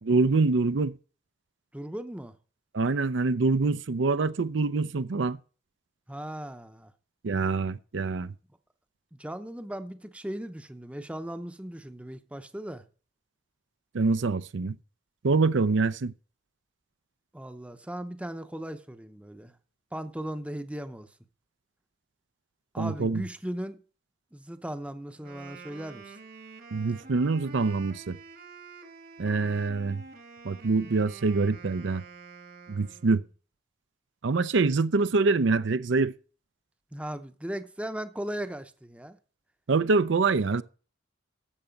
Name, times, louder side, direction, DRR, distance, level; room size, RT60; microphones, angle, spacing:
voice 1, 0.0-0.9 2.7-5.4 7.2-8.3 13.9-14.8 15.2-16.1 22.8-23.2 26.7-28.2 29.2-30.0 30.4-32.0 32.7-33.2 34.2-36.1 39.7-40.6, right 3 dB, 70° right, 0.6 m, -25 dB
voice 2, 1.7-2.4 6.1-6.9 9.1-12.8 17.3-19.5 19.9-21.1 22.7-23.8 24.3-26.2 36.9-39.2, right 1 dB, 5° right, 0.7 m, -37 dB
Wind instrument woodwind instrument, 25.1-33.3, right 3 dB, 55° right, 1.4 m, -47 dB
13.0 x 7.9 x 5.2 m
head